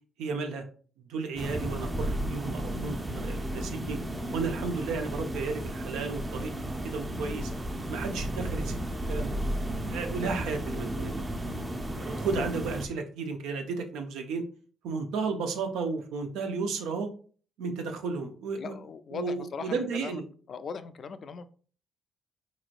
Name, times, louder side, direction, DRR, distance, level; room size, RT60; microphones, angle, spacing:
voice 1, 0.2-0.6 1.1-4.0 4.3-7.5 7.9-8.8 9.1-9.3 9.9-11.2 12.0-14.4 14.8-17.1 17.6-18.7 19.1-20.2, right 4 dB, 90° right, 5 dB, 0.6 m, -33 dB
sound 1, 1.4-12.9, right 1 dB, 20° right, 0.5 m, -33 dB
voice 2, 18.6-20.2 20.5-21.4, left 5 dB, 50° left, 12 dB, 0.3 m, -39 dB
4.0 x 3.0 x 2.5 m, 0.42 s
cardioid pair, 90°, 0 cm